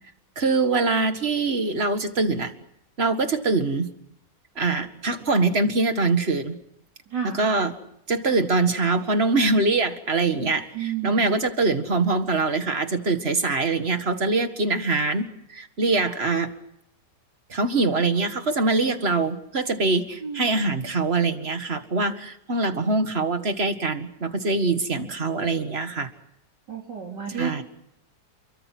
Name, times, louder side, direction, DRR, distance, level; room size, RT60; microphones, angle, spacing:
voice 1, 0.4-2.5 3.0-3.9 4.6-6.6 7.2-7.7 8.1-16.5 17.5-26.1 27.4-27.6, right 3 dB, 35° right, 8 dB, 2.0 m, -23 dB
voice 2, 7.1-7.4 10.7-11.2 20.2-20.5 26.7-27.6, right 8 dB, 75° right, -1 dB, 3.7 m, -31 dB
29.5 x 23.0 x 6.1 m, 0.78 s
omnidirectional pair, 1.9 m